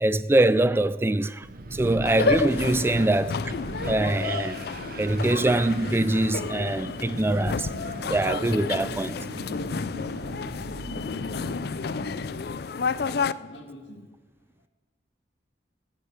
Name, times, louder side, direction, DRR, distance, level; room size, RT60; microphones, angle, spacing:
voice 1, 0.0-3.4 3.9-4.6 5.0-7.8 8.1-9.2, right 2 dB, 15° right, 0.3 m, -23 dB
Wind, 1.4-12.4, right 2 dB, 55° right, 0.8 m, -39 dB
sound 1, 2.1-13.3, left 5 dB, 60° left, 0.4 m, -31 dB
voice 2, 11.3-12.3 13.4-14.1, left 1 dB, 90° left, 2.4 m, -44 dB
16.0 x 8.3 x 8.0 m
head